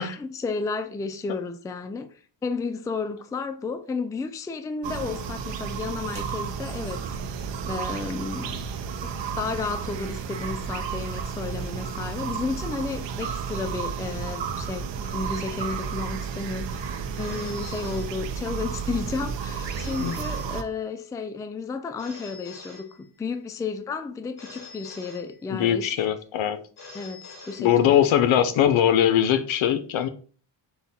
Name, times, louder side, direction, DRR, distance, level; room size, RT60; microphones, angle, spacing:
voice 1, 0.0-2.1 2.4-7.0 7.6-8.6 9.0-25.9 26.9-28.0, left 4 dB, 10° left, 0.3 m, -32 dB
sound 1, 4.8-20.6, right 6 dB, 65° right, 0.7 m, -32 dB
Telephone, 17.2-18.7 19.6-21.1 22.0-23.5 24.4-25.9 26.8-28.3, left 4 dB, 50° left, 1.9 m, -46 dB
voice 2, 25.5-26.6 27.6-30.1, left 10 dB, 75° left, 0.8 m, -21 dB
5.5 x 2.3 x 4.1 m
cardioid pair, 105°, 48 cm